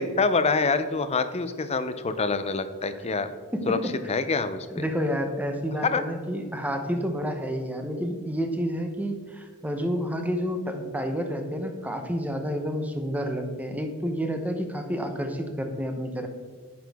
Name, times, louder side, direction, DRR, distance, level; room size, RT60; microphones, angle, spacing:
voice 1, 0.0-3.3 3.7-3.8 4.1-4.8 5.8-6.0, left 4 dB, 30° left, 11 dB, 0.5 m, -26 dB
voice 2, 4.7-16.3, equal, 5° right, 5 dB, 0.8 m, -29 dB
9.3 x 6.0 x 3.5 m, 1.6 s
head